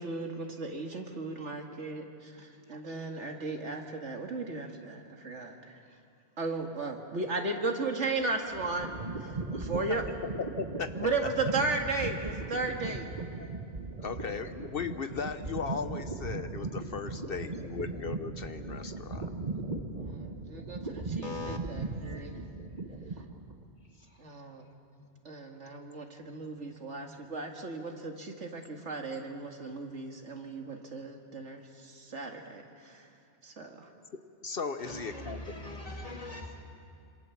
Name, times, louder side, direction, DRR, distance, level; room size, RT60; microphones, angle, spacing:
voice 1, 0.0-5.7 6.4-8.9 9.2-10.0 11.0-13.1 20.0-22.4 24.2-24.6 25.2-33.1 33.4-33.9, right 3 dB, 80° right, 3 dB, 2.4 m, -35 dB
voice 2, 2.4-3.1 13.4-13.5 21.2-21.6 23.0-23.1 24.9-25.2 26.0-26.1 26.4-27.2 34.8-36.6, left 2 dB, 30° left, 2 dB, 2.4 m, -43 dB
sound 1, 8.2-23.6, right 3 dB, 35° right, 1.5 m, -38 dB
voice 3, 10.4-10.9 14.0-19.3 34.1-35.6, left 5 dB, 55° left, 10 dB, 1.0 m, -37 dB
26.5 x 26.0 x 7.2 m, 2.5 s
omnidirectional pair, 1.2 m